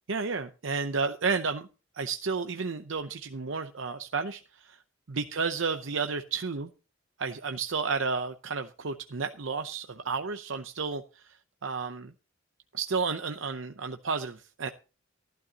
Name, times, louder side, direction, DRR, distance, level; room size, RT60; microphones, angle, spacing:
voice 1, 0.1-1.7 1.9-4.8 5.1-6.7 7.2-12.1 12.7-14.7, right 4 dB, 70° right, 0.7 m, -32 dB
15.0 x 11.5 x 2.9 m
head